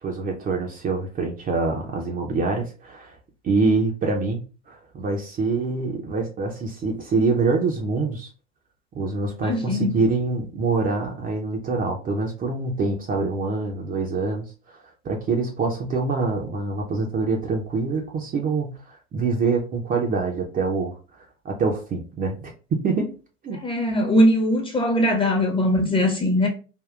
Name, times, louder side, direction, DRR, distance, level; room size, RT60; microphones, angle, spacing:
voice 1, 0.0-3.2 3.4-8.3 9.0-14.8 15.0-20.9 21.4-23.1 23.4-23.6, right 3 dB, 25° right, 0.6 m, -25 dB
voice 2, 9.4-9.9 23.6-26.5, left 1 dB, 15° left, 0.8 m, -20 dB
3.5 x 2.2 x 2.3 m
figure-of-eight pair, 75°, 34 cm